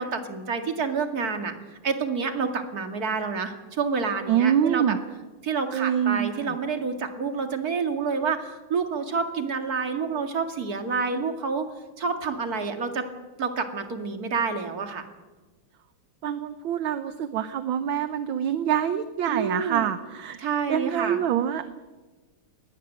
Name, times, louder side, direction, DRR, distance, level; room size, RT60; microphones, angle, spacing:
voice 1, 0.0-1.5 1.8-5.0 5.4-11.7 12.0-13.0 13.4-15.1 19.3-19.9 20.4-21.2, right 5 dB, 45° right, 6 dB, 2.5 m, -28 dB
voice 2, 4.3-5.0 5.7-6.6 16.2-20.4 20.7-21.8, right 9 dB, 70° right, 11 dB, 1.6 m, -25 dB
21.0 x 18.5 x 9.1 m, 1.2 s
omnidirectional pair, 2.4 m